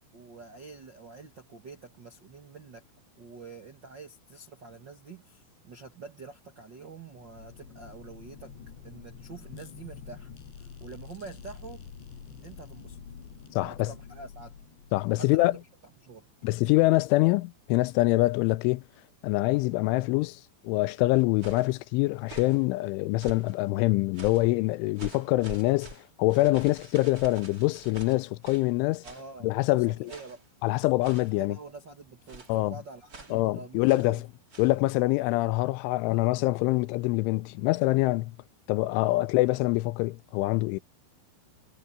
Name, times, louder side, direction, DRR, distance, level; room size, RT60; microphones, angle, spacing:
voice 1, 0.1-2.8 3.2-8.5 8.8-10.3 10.6-11.8 12.4-13.0 13.6-14.5 15.2-15.5 16.0-16.3 29.0-29.5 29.9-30.4 31.2-34.2 38.9-39.2, right 4 dB, 75° right, 1.0 m, -46 dB
sound 1, 7.1-15.6, left 6 dB, 70° left, 6.5 m, -47 dB
voice 2, 13.5-13.9 14.9-15.5 16.4-18.8 19.2-25.9 26.2-29.0 29.4-30.1 30.6-31.6 32.5-32.7 33.3-34.2 34.6-38.4 38.7-40.8, left 20 dB, 85° left, 3.1 m, -25 dB
sound 2, 21.1-21.7 22.2-22.6 23.2-23.6 24.1-24.5 25.0-28.7 29.0-29.3 30.1-30.5 31.0-31.4 32.3-32.6 33.1-33.4 33.9-34.1 34.5-34.8, right 3 dB, 25° right, 2.3 m, -46 dB
omnidirectional pair, 5.4 m